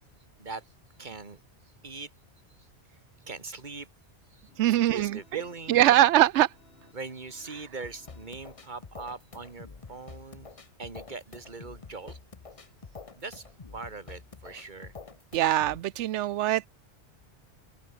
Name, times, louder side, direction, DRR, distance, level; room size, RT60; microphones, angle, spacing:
voice 1, 1.0-1.4 1.8-2.1 2.6-2.7 3.3-3.9 4.3-6.0 6.9-10.5 10.8-12.2 13.2-13.5 13.7-14.9, right 3 dB, 45° right, 2.1 m, -41 dB
sound 1, 4.5-9.2, left 3 dB, 60° left, 2.9 m, -61 dB
voice 2, 4.6-5.4 5.7-6.5 14.5-14.6 15.3-16.7, right 13 dB, 90° right, 0.9 m, -23 dB
sound 2, 7.8-15.8, left 4 dB, 30° left, 1.0 m, -47 dB
omnidirectional pair, 1.2 m